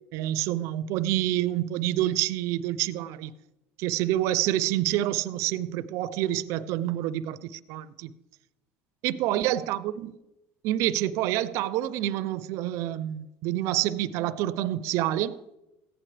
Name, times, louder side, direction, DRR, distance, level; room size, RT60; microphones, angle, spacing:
voice 1, 0.1-3.3 3.8-8.1 9.0-10.2 10.6-15.4, right 13 dB, 65° right, 0.5 m, -27 dB
14.5 x 9.9 x 3.3 m
cardioid pair, 125°, 5 cm